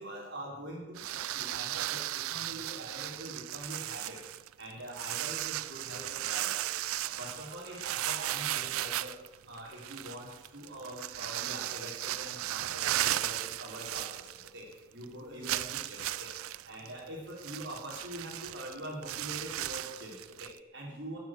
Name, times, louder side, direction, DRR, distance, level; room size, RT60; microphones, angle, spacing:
voice 1, 0.0-4.2 4.6-6.7 7.2-9.1 9.5-14.7 14.9-16.3 16.6-21.2, right 1 dB, 55° right, -1 dB, 4.1 m, -44 dB
sound 1, 1.0-14.7 15.0-15.1 15.4-20.6, right 14 dB, 85° right, 0.4 m, -36 dB
12.5 x 8.4 x 7.5 m, 1.1 s
head